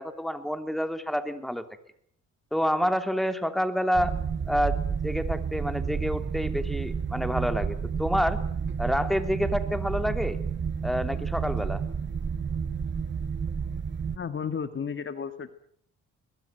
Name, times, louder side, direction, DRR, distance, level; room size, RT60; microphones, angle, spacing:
voice 1, 0.0-1.6 2.5-4.1 4.5-4.8 5.0-8.4 8.8-10.4 10.8-11.8, equal, ahead, 9 dB, 3.0 m, -28 dB
sound 1, 3.9-14.2, right 6 dB, 40° right, 1.8 m, -30 dB
voice 2, 14.1-15.5, left 6 dB, 40° left, 11 dB, 1.8 m, -33 dB
23.0 x 21.0 x 9.2 m, 0.64 s
cardioid pair, 90°, 30 cm